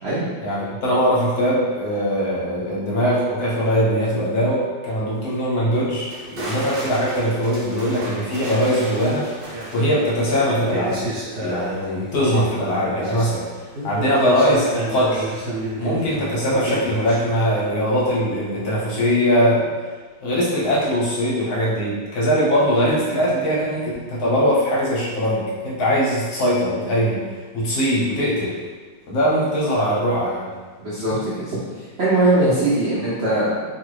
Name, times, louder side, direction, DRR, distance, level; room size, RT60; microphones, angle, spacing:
voice 1, 0.4-9.3 9.7-11.0 11.4-13.5 13.8-15.3 15.8-19.7 20.2-27.3 27.5-28.6 29.1-30.5, equal, 65° left, -6 dB, 1.1 m, -21 dB
sound 1, 6.1-18.2 18.5-18.8, right 1 dB, 65° right, 1.2 m, -31 dB
voice 2, 30.8-31.6 32.0-33.7, right 2 dB, 80° right, -9 dB, 0.5 m, -20 dB
2.8 x 2.4 x 3.1 m, 1.4 s
omnidirectional pair, 1.9 m